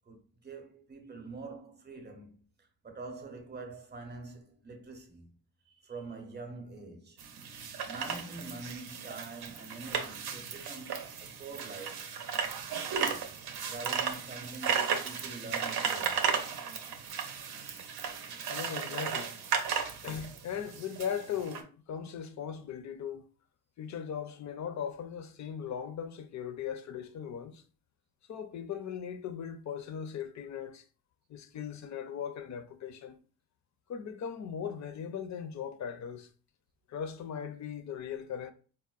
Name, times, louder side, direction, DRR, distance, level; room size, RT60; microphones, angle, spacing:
voice 1, 0.1-5.4 5.6-7.2 7.9-12.1 12.8-13.4 13.7-16.4, right 3 dB, 25° right, 0.7 m, -45 dB
sound 1, 7.2-21.6, right 6 dB, 80° right, 0.6 m, -35 dB
voice 2, 18.5-19.3 20.0-23.2 23.8-27.6 28.3-30.8 31.3-33.2 33.9-36.3 36.9-38.5, left 8 dB, 50° left, 0.5 m, -38 dB
4.1 x 2.1 x 2.3 m
cardioid pair, 100°, 37 cm